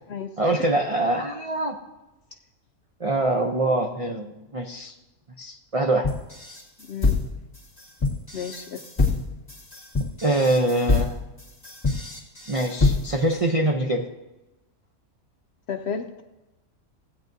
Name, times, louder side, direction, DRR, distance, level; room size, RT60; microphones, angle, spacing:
voice 1, 0.4-1.8 3.0-4.9 5.4-6.1 10.2-11.2 12.5-14.1, right 2 dB, 40° right, 2 dB, 0.4 m, -24 dB
sound 1, 6.0-13.3, left 3 dB, 20° left, 2.0 m, -26 dB
voice 2, 6.8-7.2 8.3-8.8 15.7-16.2, left 6 dB, 60° left, 6 dB, 0.7 m, -32 dB
16.0 x 8.6 x 2.6 m, 1.0 s
omnidirectional pair, 1.5 m